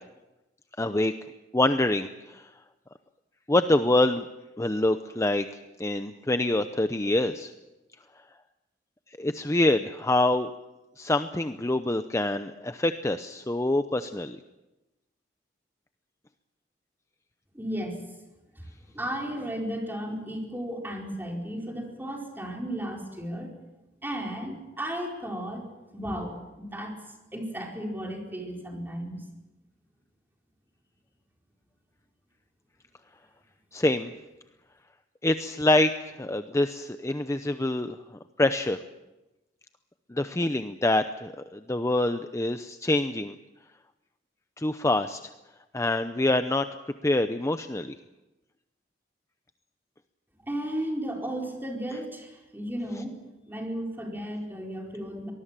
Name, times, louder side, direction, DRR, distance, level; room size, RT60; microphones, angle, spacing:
voice 1, 0.8-1.1 1.5-2.5 3.5-4.3 4.6-5.5 5.8-7.5 9.2-10.5 11.0-14.4 33.7-34.1 35.2-35.9 36.2-38.0 38.4-38.8 40.1-43.3 44.6-45.2 45.7-46.7 47.0-47.9, left 1 dB, 15° left, 9 dB, 0.7 m, -25 dB
voice 2, 17.5-18.0 18.6-18.7 18.9-23.6 24.0-25.6 25.9-27.0 27.3-29.2 50.5-55.3, equal, 10° right, 0 dB, 4.7 m, -34 dB
24.0 x 20.0 x 7.5 m, 1.0 s
head